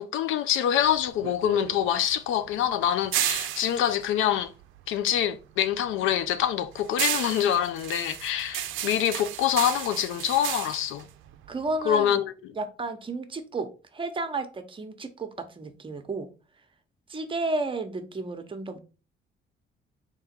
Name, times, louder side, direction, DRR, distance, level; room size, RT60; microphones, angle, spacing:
voice 1, 0.0-4.5 4.9-11.1 11.9-12.3, left 10 dB, 80° left, 0.4 m, -25 dB
sound 1, 0.8-5.3 5.6-12.0, right 12 dB, 90° right, 0.4 m, -33 dB
voice 2, 11.5-12.2 12.5-16.3 17.1-18.8, right 3 dB, 25° right, 0.8 m, -32 dB
3.6 x 2.9 x 4.3 m
cardioid pair, 90°, 20 cm